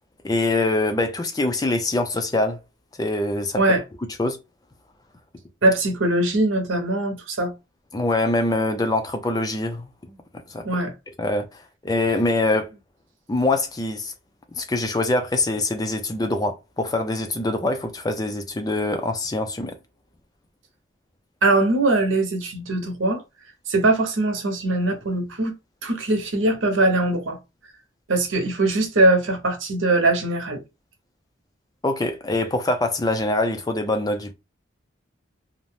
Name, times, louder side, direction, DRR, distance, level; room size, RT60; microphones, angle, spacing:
voice 1, 0.2-2.6 3.0-3.6 4.2-4.4 7.9-9.9 10.5-10.6 11.2-12.7 13.3-14.1 14.6-19.7 31.8-34.3, left 2 dB, 20° left, 0.4 m, -24 dB
voice 2, 5.6-7.5 10.6-10.9 21.4-23.2 23.7-25.5 25.8-27.4 28.1-30.6, right 2 dB, 75° right, 0.8 m, -21 dB
2.6 x 2.1 x 3.2 m
head